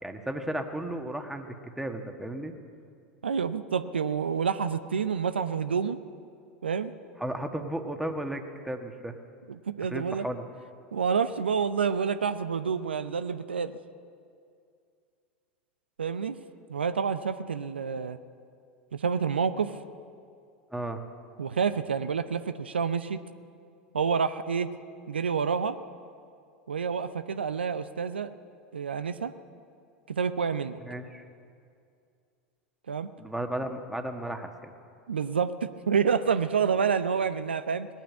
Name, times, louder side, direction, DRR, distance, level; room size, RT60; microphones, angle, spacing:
voice 1, 0.0-2.5 7.2-9.1 9.9-10.5 20.7-21.0 30.8-31.2 33.2-34.7, right 1 dB, 5° right, 5 dB, 1.4 m, -34 dB
voice 2, 3.2-6.0 6.6-6.9 9.5-10.2 10.9-13.7 16.0-16.4 16.7-18.2 18.9-19.7 21.4-23.2 23.9-24.7 25.1-25.8 26.7-28.3 28.7-29.3 30.1-30.8 32.9-33.1 35.1-37.9, right 6 dB, 85° right, 12 dB, 0.5 m, -28 dB
18.5 x 9.1 x 8.5 m, 2.4 s
figure-of-eight pair, 85°, 6 cm